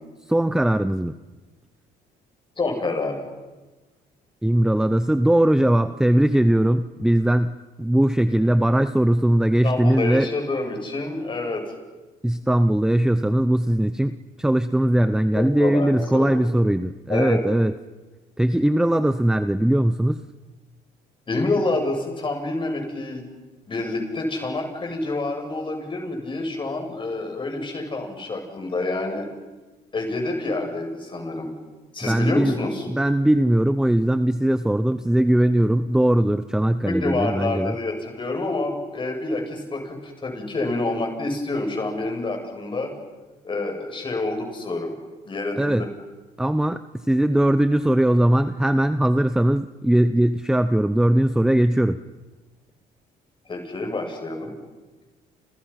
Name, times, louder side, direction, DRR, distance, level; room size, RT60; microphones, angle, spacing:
voice 1, 0.3-1.2 4.4-10.3 12.2-17.7 18.4-20.2 32.0-32.6 32.9-37.8 45.6-45.9 46.4-52.0, right 1 dB, 5° right, 11 dB, 0.8 m, -20 dB
voice 2, 2.6-3.2 9.6-11.6 15.3-16.5 17.1-17.4 21.3-23.2 23.7-29.3 29.9-31.5 31.9-32.8 36.8-42.9 43.4-44.9 45.3-45.9 53.5-54.5, left 2 dB, 30° left, 3 dB, 7.7 m, -27 dB
29.5 x 29.5 x 5.9 m, 1.2 s
cardioid pair, 110°, 17 cm